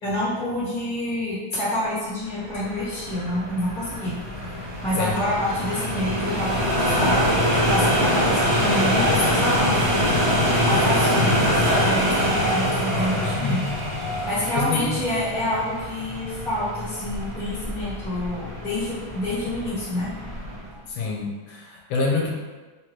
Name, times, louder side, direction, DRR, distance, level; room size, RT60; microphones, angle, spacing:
voice 1, 0.0-4.2 4.8-7.3 7.7-10.1 10.6-13.6 14.3-20.1 20.6-20.7, left 1 dB, 25° left, -10 dB, 1.6 m, -27 dB
sound 1, 2.4-20.7, equal, 40° right, 0.5 m, -24 dB
voice 2, 13.4-13.8 14.5-14.9 20.9-22.3, left 4 dB, 80° left, -1 dB, 1.4 m, -26 dB
3.7 x 2.9 x 3.1 m, 1.3 s
omnidirectional pair, 2.2 m